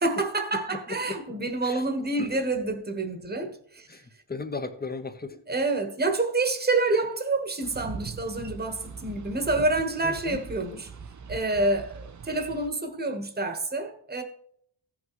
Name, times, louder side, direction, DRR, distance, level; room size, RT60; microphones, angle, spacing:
voice 1, 0.0-4.0 5.5-10.9 11.3-14.2, right 2 dB, 20° right, 1.2 m, -28 dB
voice 2, 0.5-1.8 2.2-2.4 3.9-5.4 10.0-10.4, left 4 dB, 20° left, 0.9 m, -37 dB
Boat Water vehicle, 7.6-12.7, right 6 dB, 40° right, 0.6 m, -41 dB
15.5 x 5.9 x 3.1 m
wide cardioid pair, 125°, 44 cm